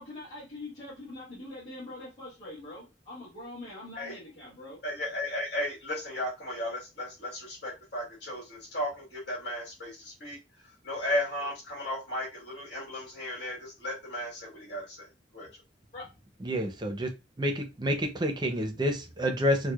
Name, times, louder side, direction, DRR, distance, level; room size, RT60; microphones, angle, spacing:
voice 1, 0.0-4.8 15.9-16.1, left 2 dB, 40° left, 2.0 m, -43 dB
voice 2, 4.8-10.4 10.8-15.1 15.3-15.5, left 1 dB, 70° left, 1.7 m, -35 dB
voice 3, 16.4-17.1 17.4-19.7, equal, 25° right, 0.6 m, -28 dB
4.6 x 2.2 x 2.4 m
head